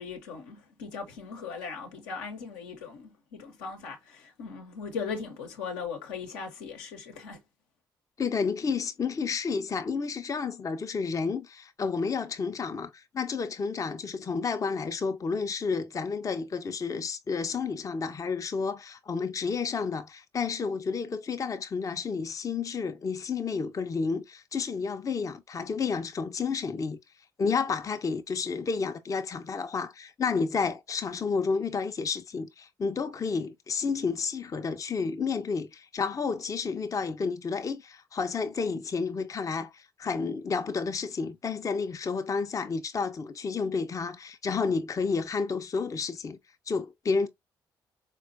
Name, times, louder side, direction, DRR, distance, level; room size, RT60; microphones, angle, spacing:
voice 1, 0.0-7.4, left 5 dB, 75° left, 0.8 m, -39 dB
voice 2, 8.2-27.0 27.4-46.4 46.7-47.3, left 5 dB, 30° left, 0.5 m, -31 dB
4.2 x 2.2 x 2.6 m
hypercardioid pair, 45°, 11 cm